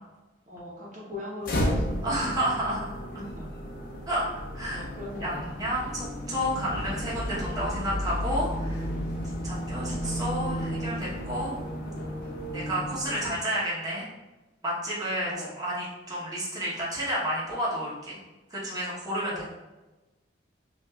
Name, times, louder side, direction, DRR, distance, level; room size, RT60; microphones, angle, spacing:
voice 1, 0.5-2.1 3.2-3.5 4.7-5.6 9.5-9.6 12.8-13.4 15.3-15.6 19.2-19.5, left 1 dB, 45° right, -5 dB, 1.0 m, -40 dB
sound 1, 1.4-13.4, equal, 50° left, 0.8 m, -33 dB
voice 2, 2.0-2.8 4.1-4.2 4.5-4.8 5.2-8.9 9.4-11.6 12.5-14.1 14.6-15.3 15.6-18.2 18.5-19.5, equal, 20° right, -7 dB, 1.1 m, -30 dB
5.8 x 2.6 x 2.4 m, 1.1 s
head